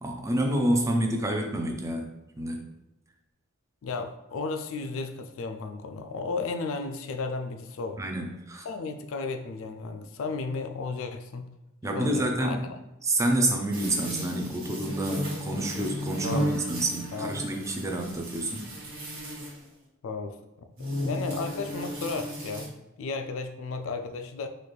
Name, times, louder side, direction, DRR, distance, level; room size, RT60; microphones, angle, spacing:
voice 1, 0.0-2.1 2.4-2.6 8.0-8.7 11.8-12.7 13.0-18.7, right 1 dB, 15° right, 3 dB, 0.4 m, -28 dB
voice 2, 3.8-8.0 8.6-11.4 11.9-12.8 16.2-16.8 17.1-17.6 20.0-22.7 23.0-24.5, left 4 dB, 70° left, 7 dB, 0.4 m, -34 dB
sound 1, 13.7-19.7 20.8-22.7, equal, 80° right, 1.5 m, -34 dB
4.0 x 2.5 x 3.1 m, 0.97 s
head